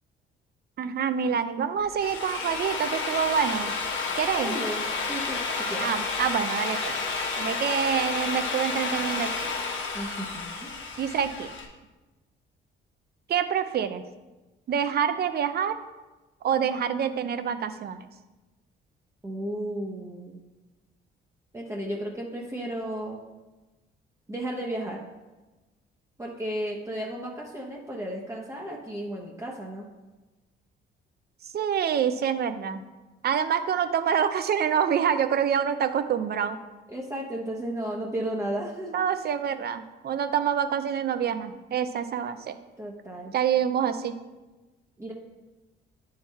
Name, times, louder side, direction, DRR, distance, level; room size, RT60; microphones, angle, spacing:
voice 1, 0.8-3.7 4.2-4.5 5.8-7.0 7.4-9.3 11.0-11.5 13.3-14.0 14.7-15.8 16.4-18.1 31.4-32.8 33.2-36.6 38.9-42.6 43.3-44.1, right 8 dB, 55° right, 10 dB, 0.6 m, -26 dB
Drill, 1.8-11.6, left 4 dB, 75° left, 1.1 m, -31 dB
voice 2, 4.4-5.9 9.9-10.8 19.2-20.4 21.5-23.2 24.3-25.0 26.2-29.9 36.9-39.0 42.8-43.3 45.0-45.1, right 1 dB, 15° right, -2 dB, 0.9 m, -34 dB
9.5 x 3.9 x 4.1 m, 1.1 s
cardioid pair, 90°, 20 cm